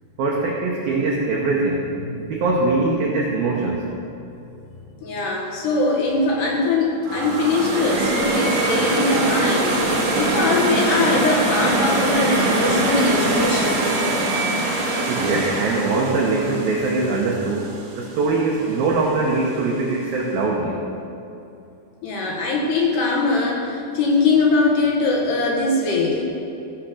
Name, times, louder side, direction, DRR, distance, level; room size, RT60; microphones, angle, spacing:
voice 1, 0.2-1.9 2.3-3.9 15.1-17.7 18.0-20.8, right 3 dB, 85° right, -3 dB, 2.1 m, -22 dB
voice 2, 5.0-13.8 22.0-26.2, left 3 dB, 70° left, -2 dB, 3.1 m, -21 dB
sound 1, 7.0-18.0, right 2 dB, 60° right, 2.1 m, -22 dB
15.0 x 6.2 x 6.5 m, 2.8 s
omnidirectional pair, 5.7 m